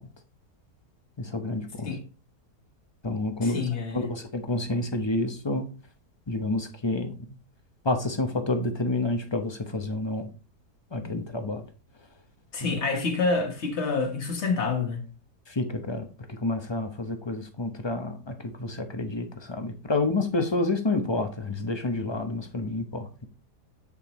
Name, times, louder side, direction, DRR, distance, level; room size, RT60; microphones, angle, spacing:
voice 1, 1.2-2.0 3.0-5.7 6.3-7.4 7.8-10.3 10.9-11.6 12.6-12.8 15.5-23.3, left 2 dB, 30° left, 0.5 m, -29 dB
voice 2, 3.4-4.1 11.0-11.2 12.5-15.1, left 4 dB, 45° left, 1.7 m, -28 dB
7.7 x 7.3 x 3.1 m
omnidirectional pair, 1.7 m